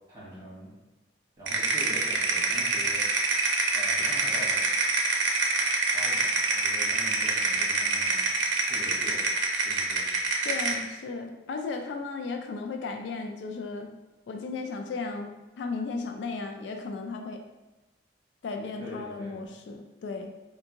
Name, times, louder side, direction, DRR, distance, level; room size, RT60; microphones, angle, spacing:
voice 1, 0.1-0.8 1.4-3.1 3.7-4.7 5.9-8.3 8.6-9.3 9.6-10.1 18.8-19.4, equal, 20° right, -8 dB, 1.3 m, -43 dB
sound 1, 1.5-10.8, right 3 dB, 85° right, 0.5 m, -26 dB
voice 2, 10.4-13.9 14.3-17.4 18.4-20.3, left 4 dB, 75° left, 5 dB, 0.3 m, -35 dB
3.4 x 2.6 x 2.8 m, 1.1 s
head